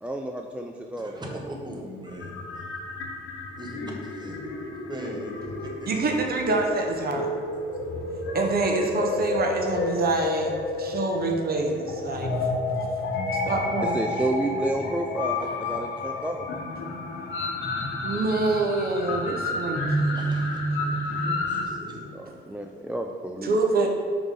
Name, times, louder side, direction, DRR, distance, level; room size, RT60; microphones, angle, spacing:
voice 1, 0.0-1.4 7.2-7.3 13.8-16.5 22.1-23.6, right 1 dB, 5° right, 3 dB, 0.3 m, -30 dB
voice 2, 1.0-2.4 3.5-4.5 4.9-5.9 6.5-6.6 15.4-15.6 20.1-22.2, equal, 20° right, 0 dB, 1.2 m, -39 dB
sound 1, 2.1-21.7, left 2 dB, 75° left, 0.9 m, -30 dB
voice 3, 5.9-7.3 8.3-10.5 10.8-12.3 13.5-14.0 18.0-20.2 23.4-23.9, right 3 dB, 50° right, 2 dB, 0.8 m, -26 dB
4.9 x 3.7 x 5.3 m, 2.2 s
cardioid pair, 90°, 20 cm